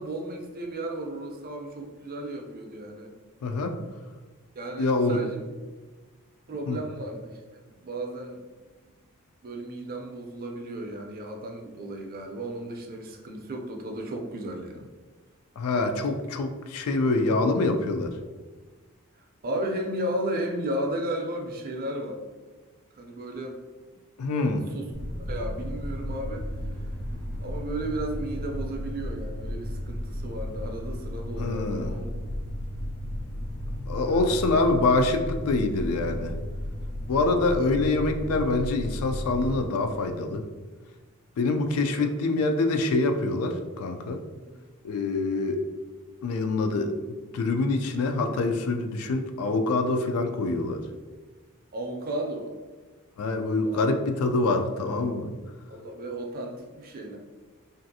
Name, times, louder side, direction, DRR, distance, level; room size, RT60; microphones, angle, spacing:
voice 1, 0.0-3.1 4.6-5.5 6.5-8.4 8.8-8.9 9.4-14.9 19.4-22.2 23.0-23.6 24.7-24.9 25.3-26.5 27.4-32.1 34.0-34.4 41.7-42.1 44.4-44.5 51.7-52.6 53.6-53.9 55.7-57.2, right 1 dB, 40° right, 2 dB, 0.4 m, -34 dB
voice 2, 3.4-3.7 4.8-5.2 6.7-6.8 15.6-18.1 24.2-24.7 31.4-31.9 33.9-36.4 37.1-40.4 41.4-44.2 44.8-45.6 46.2-46.9 47.3-50.8 53.2-55.3, left 3 dB, 75° left, 6 dB, 0.3 m, -25 dB
sound 1, 24.9-39.6, equal, 90° left, 0.7 m, -34 dB
3.1 x 2.5 x 2.6 m, 1.3 s
head